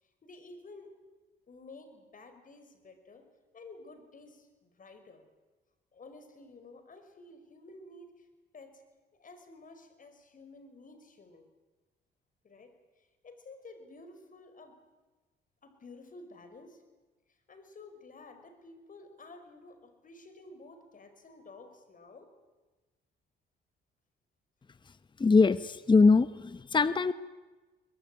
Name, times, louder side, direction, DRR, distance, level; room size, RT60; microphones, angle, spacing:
voice 1, 0.2-1.0 1.5-3.3 3.5-5.3 5.9-8.3 8.5-8.8 9.1-11.5 12.4-14.8 15.6-16.8 17.3-22.3, left 2 dB, 40° left, 8 dB, 5.2 m, -52 dB
voice 2, 25.2-27.1, left 4 dB, 25° left, 14 dB, 1.0 m, -22 dB
23.0 x 21.0 x 9.2 m, 1.2 s
cardioid pair, 90°, 20 cm